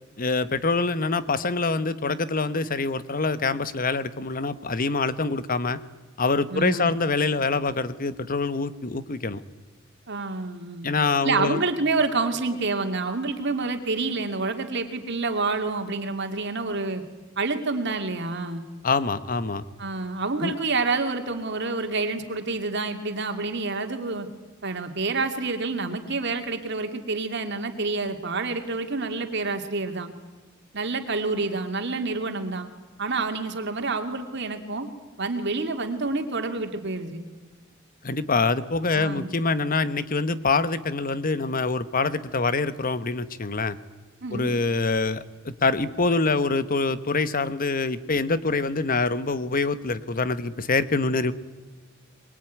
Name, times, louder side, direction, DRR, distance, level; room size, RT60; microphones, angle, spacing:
voice 1, 0.2-5.8 6.2-9.4 10.8-11.6 18.8-19.6 20.4-20.5 38.0-43.8 44.3-51.3, left 3 dB, 45° left, 14 dB, 1.1 m, -25 dB
voice 2, 6.5-6.9 10.1-10.9 11.2-17.0 17.4-18.6 19.8-24.3 24.6-30.1 30.7-32.7 33.0-34.9 35.2-37.2 38.9-39.3 44.2-44.5, right 3 dB, 55° right, 5 dB, 2.5 m, -28 dB
23.0 x 22.5 x 9.3 m, 1.3 s
head